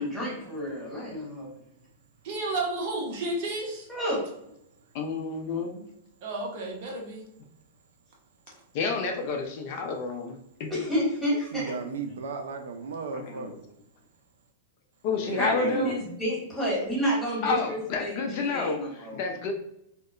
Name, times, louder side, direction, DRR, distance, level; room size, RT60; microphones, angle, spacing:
voice 1, 0.0-1.6 3.9-4.3 10.7-11.7 15.3-19.4, equal, ahead, -8 dB, 1.4 m, -30 dB
voice 2, 2.2-3.9 6.2-7.3, right 2 dB, 50° right, 0 dB, 0.7 m, -32 dB
voice 3, 4.9-5.9 8.7-10.7 13.1-13.5 15.0-16.0 17.4-18.8 19.2-19.5, left 4 dB, 45° left, 3 dB, 0.4 m, -30 dB
voice 4, 11.5-13.6 15.2-16.0, right 4 dB, 80° right, 6 dB, 0.3 m, -35 dB
2.8 x 2.1 x 2.4 m, 0.79 s
supercardioid pair, 150°, 0 cm